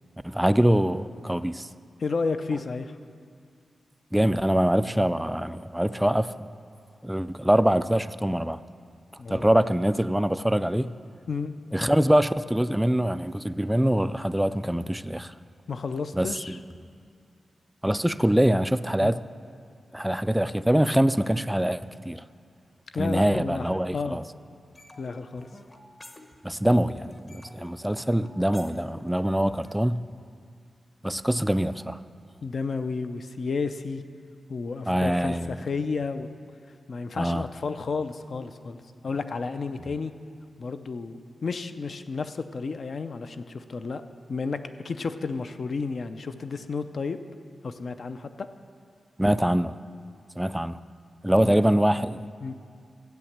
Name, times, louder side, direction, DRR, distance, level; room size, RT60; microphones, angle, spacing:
voice 1, 0.2-1.7 4.1-6.5 7.0-8.6 9.3-10.9 11.7-15.3 16.1-16.6 17.8-19.2 19.9-22.2 23.0-24.2 26.4-30.1 31.0-32.0 34.9-35.6 37.2-37.5 49.2-49.8 50.4-50.8 51.2-52.3, right 1 dB, 5° right, 0.3 m, -24 dB
voice 2, 2.0-3.0 9.2-9.5 11.3-11.6 15.7-16.6 19.0-19.2 22.9-24.2 25.0-25.5 32.4-34.0 34.5-36.3 36.9-38.8 39.0-40.1 40.6-44.0 44.3-47.2 47.6-48.5 51.4-51.6 52.4-52.5, left 4 dB, 55° left, 0.6 m, -32 dB
sound 1, 24.7-26.7 26.9-29.7, left 1 dB, 25° left, 1.0 m, -49 dB
14.0 x 8.9 x 7.3 m
wide cardioid pair, 125°, 0 cm